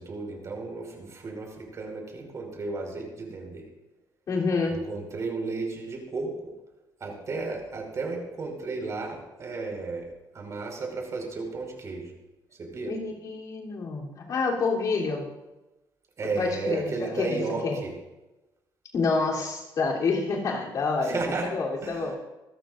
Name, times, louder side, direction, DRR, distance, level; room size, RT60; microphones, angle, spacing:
voice 1, 0.0-3.6 4.7-6.3 7.0-10.1 10.3-12.1 12.6-12.9 16.2-17.9 21.0-21.5 21.8-22.1, right 3 dB, 40° right, 1 dB, 5.1 m, -33 dB
voice 2, 4.3-4.9 12.9-15.3 16.4-17.8 18.9-21.2 21.5-22.1, left 4 dB, 50° left, -2 dB, 3.4 m, -28 dB
26.0 x 13.5 x 2.6 m, 1.0 s
cardioid pair, 130°, 8 cm